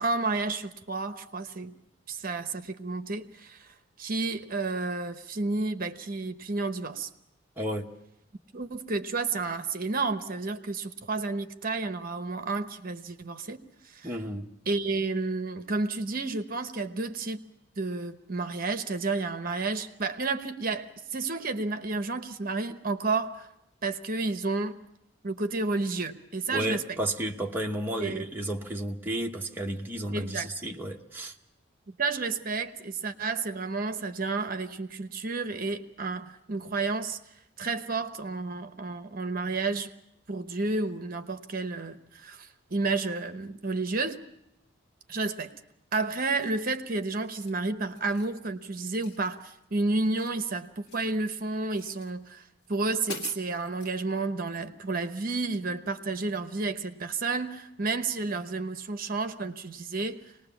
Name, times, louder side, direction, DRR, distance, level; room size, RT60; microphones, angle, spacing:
voice 1, 0.0-1.7 2.1-7.1 8.5-14.1 14.7-17.4 17.8-23.5 23.8-24.8 25.2-27.0 28.0-28.2 30.1-30.5 31.9-37.2 37.6-39.9 40.3-44.2 45.1-45.5 45.9-52.4 52.7-60.2, right 3 dB, 40° right, 1.0 m, -31 dB
voice 2, 7.6-7.9 14.0-14.5 26.5-31.4, right 1 dB, 10° right, 1.1 m, -32 dB
sound 1, 46.4-46.7 47.1-47.6 48.0-48.3 49.0-49.7 49.9-51.2 51.7-52.1 52.6-52.7 53.0-54.0, left 2 dB, 85° left, 1.9 m, -44 dB
25.5 x 19.5 x 7.1 m
head